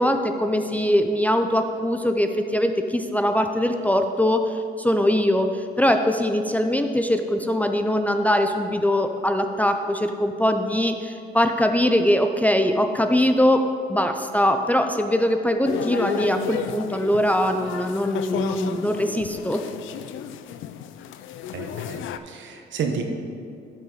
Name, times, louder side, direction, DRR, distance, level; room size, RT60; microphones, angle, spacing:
voice 1, 0.0-19.6, left 1 dB, 5° left, 6 dB, 0.5 m, -22 dB
sound 1, 15.6-22.2, left 9 dB, 80° left, 0.4 m, -33 dB
voice 2, 21.5-23.0, right 6 dB, 70° right, 4 dB, 1.1 m, -31 dB
11.5 x 5.6 x 4.0 m, 2.4 s
cardioid pair, 90°, 20 cm